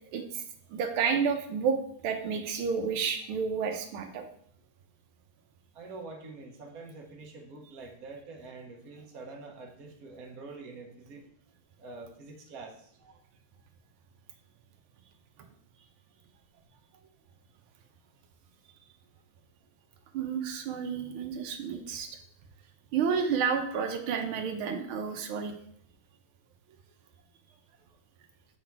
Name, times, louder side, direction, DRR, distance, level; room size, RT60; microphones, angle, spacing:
voice 1, 0.1-0.4 0.7-1.8 2.0-4.3 20.1-22.2 22.9-25.5, right 6 dB, 85° right, 5 dB, 1.6 m, -30 dB
voice 2, 5.7-11.2 11.8-12.7, right 3 dB, 50° right, 1 dB, 1.4 m, -45 dB
7.1 x 4.0 x 4.5 m, 0.66 s
omnidirectional pair, 2.2 m